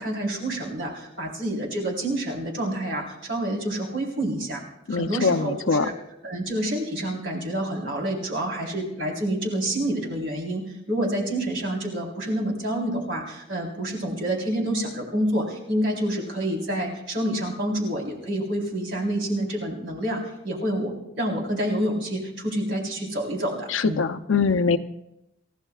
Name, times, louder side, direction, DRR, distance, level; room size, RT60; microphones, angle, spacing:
voice 1, 0.0-4.6 4.9-5.9 6.2-24.0, right 1 dB, 65° right, -2 dB, 4.0 m, -28 dB
voice 2, 4.9-5.9 23.7-24.8, left 5 dB, 75° left, 10 dB, 0.7 m, -23 dB
28.5 x 15.5 x 2.4 m, 0.87 s
head